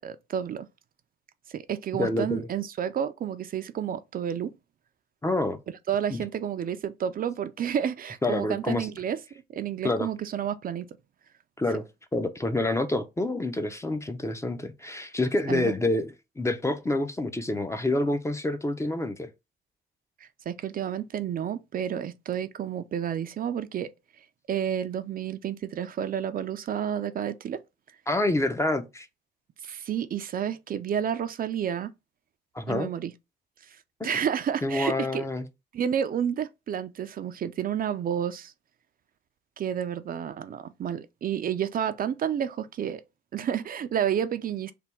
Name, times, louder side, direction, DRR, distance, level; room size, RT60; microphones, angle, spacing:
voice 1, 0.0-0.7 1.5-4.5 5.9-9.2 9.5-11.0 15.5-15.7 20.2-27.6 29.6-31.9 32.7-33.1 33.6-35.3 35.7-38.5 39.6-43.0 43.3-44.7, right 9 dB, 45° right, 0.4 m, -30 dB
voice 2, 2.0-2.5 5.2-5.6 6.1-6.2 8.2-8.9 9.8-10.1 11.6-11.8 12.1-19.3 28.1-29.1 32.5-32.9 34.6-35.5, left 2 dB, 15° left, 0.5 m, -27 dB
3.4 x 2.2 x 4.3 m
cardioid pair, 90°, 20 cm